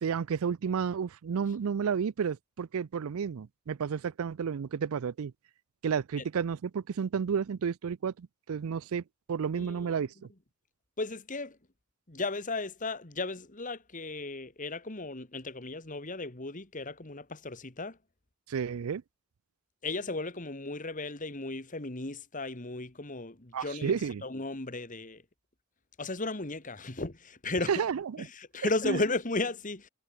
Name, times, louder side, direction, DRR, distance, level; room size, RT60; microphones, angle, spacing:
voice 1, 0.0-5.3 5.8-9.0 9.3-10.1 18.5-19.0 23.5-24.2 27.7-28.3 28.8-29.0, right 6 dB, 80° right, 0.4 m, -31 dB
voice 2, 9.6-9.9 11.0-11.6 12.1-18.0 19.8-24.0 24.2-25.2 26.0-27.8 28.2-29.9, left 2 dB, 35° left, 2.0 m, -35 dB
head